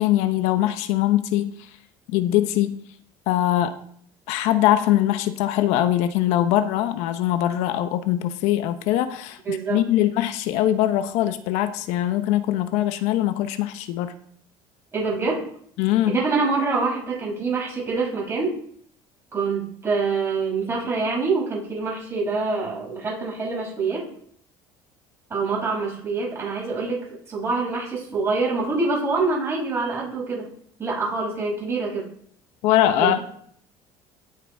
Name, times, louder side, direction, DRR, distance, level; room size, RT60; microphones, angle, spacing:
voice 1, 0.0-1.5 2.1-2.8 3.3-3.8 4.3-14.1 15.8-16.2 32.6-33.2, left 13 dB, 80° left, 10 dB, 0.9 m, -22 dB
voice 2, 9.4-9.8 14.9-15.4 16.1-18.6 19.3-24.1 25.3-30.5 30.8-32.1 33.0-33.2, right 4 dB, 25° right, -3 dB, 5.8 m, -25 dB
16.5 x 5.9 x 4.8 m, 0.62 s
cardioid pair, 135°, 11 cm